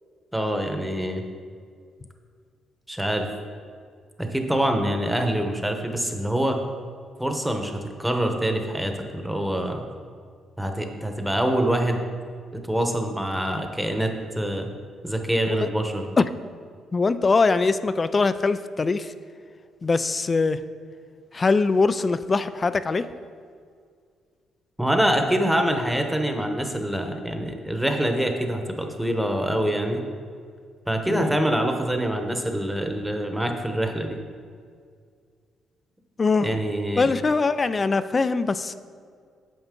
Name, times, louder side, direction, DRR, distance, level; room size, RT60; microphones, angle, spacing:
voice 1, 0.3-1.2 2.9-3.3 4.2-6.6 7.2-9.8 10.6-12.0 12.7-14.7 15.0-16.0 24.8-30.0 30.9-34.2 36.4-37.1, right 1 dB, 5° right, 4 dB, 1.0 m, -25 dB
voice 2, 16.9-19.1 19.8-20.6 21.3-23.1 31.1-31.3 36.2-36.5 37.0-38.7, left 4 dB, 30° left, 13 dB, 0.4 m, -22 dB
9.1 x 6.9 x 3.7 m, 2.1 s
cardioid pair, 90°, 0 cm